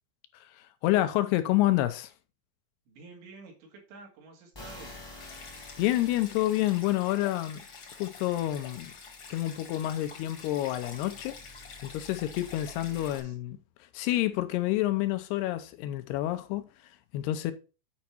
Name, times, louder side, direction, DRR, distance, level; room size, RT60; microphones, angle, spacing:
voice 1, 0.3-2.1 5.8-7.6 8.0-8.9 9.3-11.4 11.8-13.6 13.9-16.6 17.1-17.5, left 15 dB, 80° left, 2.6 m, -28 dB
voice 2, 2.9-5.0 12.8-13.4, right 4 dB, 85° right, 4.4 m, -50 dB
sound 1, 4.5-13.2, left 2 dB, 15° left, 1.0 m, -51 dB
Stream, 5.2-13.2, left 5 dB, 50° left, 1.5 m, -47 dB
9.6 x 5.1 x 4.4 m
omnidirectional pair, 5.0 m